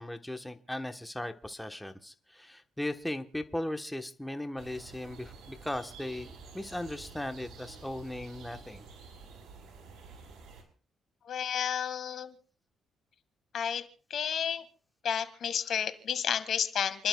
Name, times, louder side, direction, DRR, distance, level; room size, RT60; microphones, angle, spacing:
voice 1, 0.0-8.8, left 1 dB, 5° left, 7 dB, 1.1 m, -37 dB
sound 1, 4.6-10.6, right 4 dB, 70° right, 5.6 m, -50 dB
voice 2, 11.3-12.3 13.5-13.8 14.1-14.6 15.0-17.1, left 8 dB, 65° left, 11 dB, 1.7 m, -31 dB
30.0 x 11.5 x 2.3 m, 0.42 s
cardioid pair, 90°, 0 cm